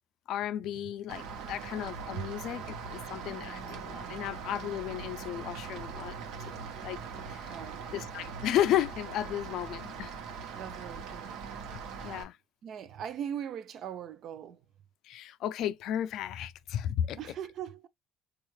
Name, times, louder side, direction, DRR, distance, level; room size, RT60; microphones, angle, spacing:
voice 1, 0.3-2.6 2.9-6.2 6.5-7.0 7.3-7.5 7.9-10.1 12.0-12.4 15.0-17.2, left 11 dB, 65° left, 0.3 m, -33 dB
Rain, 1.1-12.2, right 5 dB, 90° right, 0.8 m, -41 dB
voice 2, 7.5-7.9 10.5-11.4 12.1-12.2 12.6-14.6 17.2-17.9, right 9 dB, 50° right, 0.4 m, -40 dB
4.5 x 2.3 x 3.1 m
cardioid pair, 165°, 0 cm